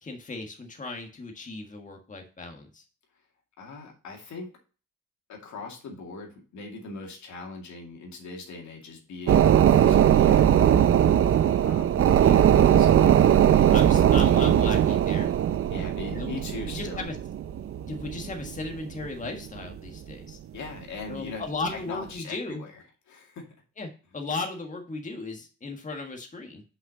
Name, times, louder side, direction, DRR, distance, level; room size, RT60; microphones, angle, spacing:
voice 1, 0.0-2.8 12.0-12.5 13.7-15.3 16.1-16.3 16.7-17.2 17.9-20.4 21.1-22.6 23.8-26.6, left 3 dB, 25° left, 3 dB, 1.6 m, -36 dB
voice 2, 3.6-4.5 5.3-10.8 11.6-11.9 12.5-13.6 15.7-17.1 20.5-21.4 21.7-23.5, left 3 dB, 70° left, 1 dB, 2.3 m, -40 dB
sound 1, 9.3-19.3 19.6-19.7, right 10 dB, 45° right, 0.6 m, -20 dB
5.7 x 5.6 x 6.8 m, 0.37 s
cardioid pair, 90°, 30 cm